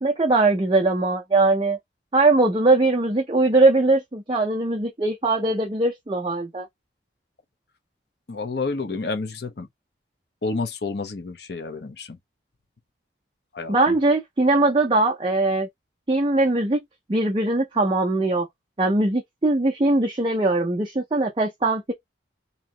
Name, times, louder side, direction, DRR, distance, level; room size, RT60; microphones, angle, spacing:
voice 1, 0.0-1.8 2.1-6.7 13.7-15.7 16.1-16.8 17.1-18.5 18.8-21.9, right 2 dB, 25° right, 0.5 m, -21 dB
voice 2, 8.3-9.7 10.4-12.2 13.5-14.0, left 3 dB, 60° left, 0.8 m, -30 dB
3.0 x 2.7 x 3.7 m
head